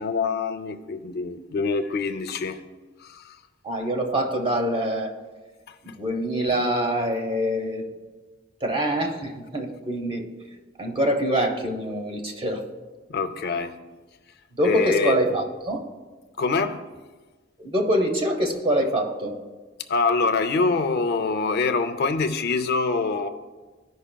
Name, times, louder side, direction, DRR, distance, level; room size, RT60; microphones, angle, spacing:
voice 1, 0.0-2.6 3.0-3.4 5.7-6.0 13.1-13.8 14.6-15.1 16.4-16.9 19.9-23.3, left 4 dB, 55° left, 0.5 m, -25 dB
voice 2, 3.6-5.2 6.0-7.9 8.6-10.3 10.8-12.7 14.5-15.8 17.6-19.4, equal, 25° right, 0.8 m, -25 dB
15.0 x 5.2 x 2.2 m
head